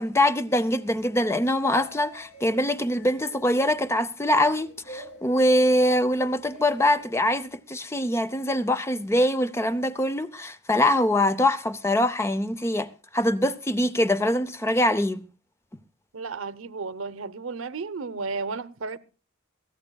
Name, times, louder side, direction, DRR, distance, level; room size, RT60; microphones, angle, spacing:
voice 1, 0.0-15.2, left 1 dB, 15° left, 0.6 m, -23 dB
sound 1, 0.6-7.6, equal, 60° left, 6.7 m, -48 dB
voice 2, 16.1-19.0, right 4 dB, 80° right, 0.8 m, -33 dB
22.5 x 15.5 x 2.3 m
head